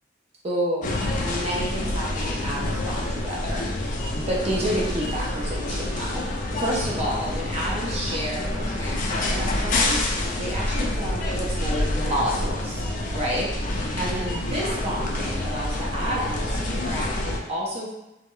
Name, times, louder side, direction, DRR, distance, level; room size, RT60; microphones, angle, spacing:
voice 1, 0.4-3.8 4.1-6.2 6.6-12.8 13.1-17.9, right 1 dB, 35° right, -4 dB, 0.4 m, -30 dB
sound 1, 0.8-17.4, left 1 dB, 45° left, 0.3 m, -27 dB
2.1 x 2.0 x 3.7 m, 0.95 s
head